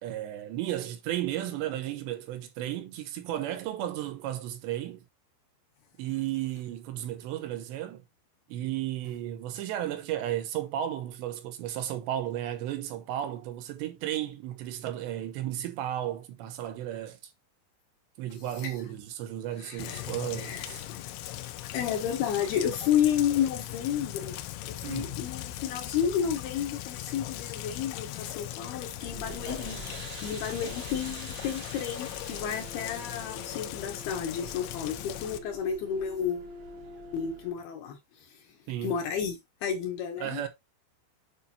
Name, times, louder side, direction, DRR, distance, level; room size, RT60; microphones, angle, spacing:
voice 1, 0.0-5.0 6.0-8.0 8.5-17.3 18.2-20.8 24.8-25.2 38.7-38.9 40.2-40.5, right 12 dB, 75° right, 2.9 m, -34 dB
voice 2, 18.3-18.8 19.6-21.0 21.4-36.5 37.1-38.5 38.8-40.5, left 8 dB, 70° left, 2.6 m, -32 dB
Rain, 19.8-35.4, left 14 dB, 90° left, 3.1 m, -39 dB
sound 1, 29.0-37.5, right 2 dB, 55° right, 1.4 m, -45 dB
8.7 x 5.5 x 2.8 m
omnidirectional pair, 5.4 m